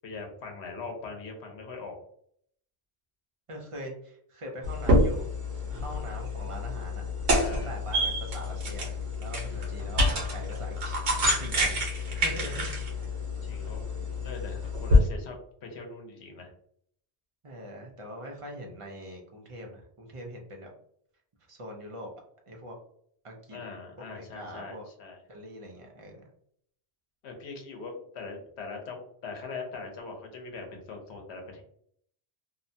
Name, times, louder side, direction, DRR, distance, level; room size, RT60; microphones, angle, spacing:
voice 1, 0.0-2.0 7.3-7.7 9.4-9.8 11.6-11.8 12.1-12.6 13.4-13.9 14.2-15.4 15.6-16.5 23.5-25.2 27.2-31.6, left 4 dB, 90° left, 2 dB, 1.0 m, -41 dB
voice 2, 3.5-7.1 7.7-13.1 17.4-20.7 21.5-22.1 22.5-22.8 23.2-23.6 24.0-24.9 25.3-26.2, equal, 40° right, 1 dB, 0.5 m, -43 dB
sound 1, 4.6-15.0, left 1 dB, 90° right, 1.1 m, -27 dB
2.7 x 2.2 x 2.6 m, 0.66 s
omnidirectional pair, 1.1 m